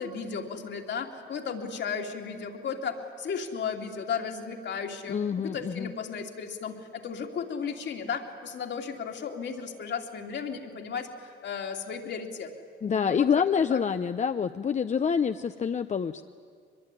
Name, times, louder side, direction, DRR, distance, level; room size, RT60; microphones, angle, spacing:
voice 1, 0.0-12.5 12.9-13.4 13.7-13.8, left 6 dB, 65° left, 3 dB, 2.7 m, -35 dB
voice 2, 5.1-5.9 12.8-16.2, left 7 dB, 35° left, 10 dB, 0.6 m, -27 dB
23.0 x 21.5 x 9.9 m, 2.1 s
cardioid pair, 90°, 20 cm